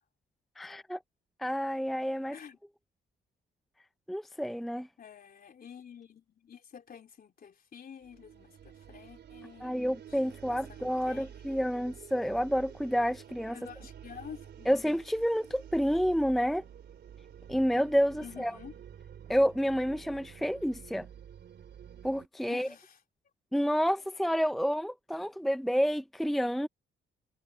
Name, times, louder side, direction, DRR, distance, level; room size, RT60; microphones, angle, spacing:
voice 1, 0.6-1.0 1.4-2.4 4.1-4.9 9.6-13.6 14.7-16.6 17.5-18.5 19.3-21.1 22.0-22.7 23.5-26.7, equal, ahead, 0.6 m, -29 dB
voice 2, 5.0-11.6 13.5-14.9 18.2-18.7 22.5-23.0, left 7 dB, 45° left, 3.5 m, -49 dB
sound 1, 8.0-22.3, right 9 dB, 60° right, 3.4 m, -50 dB
cardioid pair, 90°, 20 cm